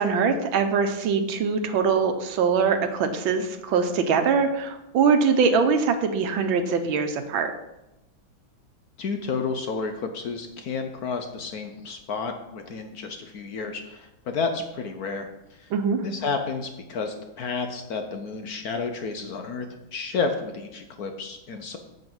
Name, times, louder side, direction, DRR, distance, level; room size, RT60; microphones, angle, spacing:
voice 1, 0.0-7.5 15.7-16.0, right 5 dB, 80° right, 7 dB, 1.7 m, -23 dB
voice 2, 9.0-15.7 16.0-21.8, left 4 dB, 60° left, 6 dB, 1.1 m, -31 dB
8.0 x 7.5 x 5.4 m, 0.93 s
omnidirectional pair, 2.2 m